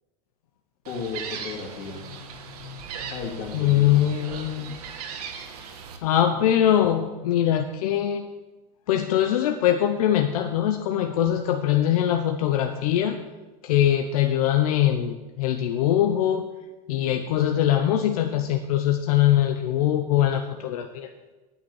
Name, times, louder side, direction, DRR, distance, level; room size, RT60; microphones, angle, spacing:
voice 1, 0.8-2.1 3.1-4.1, left 5 dB, 45° left, 0 dB, 2.9 m, -34 dB
Gull seagull, 0.8-6.0, right 7 dB, 90° right, 1.8 m, -38 dB
voice 2, 3.5-4.8 6.0-8.2 8.9-13.2 13.6-16.4 16.9-21.1, left 11 dB, 75° left, 6 dB, 0.9 m, -22 dB
9.4 x 8.9 x 7.2 m, 1.2 s
supercardioid pair, 175°, 19 cm